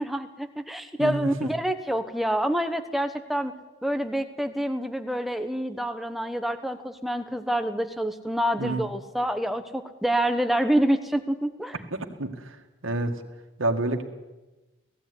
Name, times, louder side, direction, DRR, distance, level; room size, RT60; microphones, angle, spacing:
voice 1, 0.0-3.5 3.8-11.8, right 1 dB, ahead, 7 dB, 1.0 m, -27 dB
voice 2, 1.0-1.5 8.6-8.8 11.9-12.6 12.8-13.1 13.6-14.0, right 2 dB, 75° right, 4 dB, 2.1 m, -28 dB
18.0 x 15.0 x 9.8 m, 1.1 s
head